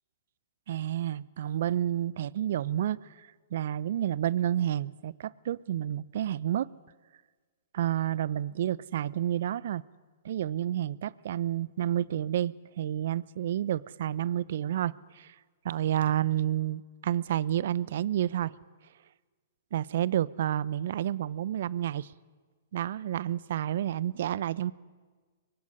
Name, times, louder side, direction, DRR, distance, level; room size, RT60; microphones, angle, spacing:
voice 1, 0.7-6.7 7.7-9.8 10.2-15.3 15.6-18.5 19.7-22.1 22.7-24.7, right 11 dB, 60° right, 22 dB, 0.8 m, -30 dB
24.5 x 22.5 x 10.0 m, 1.4 s
hypercardioid pair, 115°, 0 cm